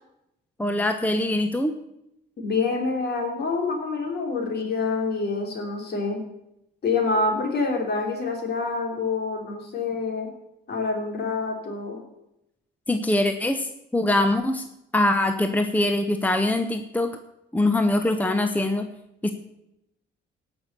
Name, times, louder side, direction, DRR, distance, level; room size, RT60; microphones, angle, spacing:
voice 1, 0.6-1.7 12.9-14.6 14.9-17.2 17.5-18.9 19.2-19.3, left 1 dB, 10° left, 7 dB, 0.9 m, -23 dB
voice 2, 2.4-6.2 6.8-10.3 10.7-12.0, left 4 dB, 55° left, 2 dB, 3.4 m, -26 dB
17.5 x 6.2 x 6.8 m, 0.84 s
cardioid pair, 90°, 20 cm